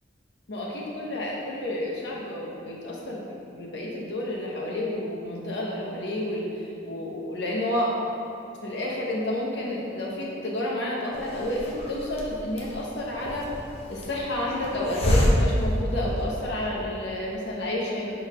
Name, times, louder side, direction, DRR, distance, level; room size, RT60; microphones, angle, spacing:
voice 1, 0.5-8.0 8.6-13.5 13.9-18.1, left 1 dB, 70° left, -3 dB, 1.0 m, -30 dB
Hiss, 11.1-16.6, equal, 35° left, 0.7 m, -28 dB
4.7 x 4.2 x 4.9 m, 2.7 s
head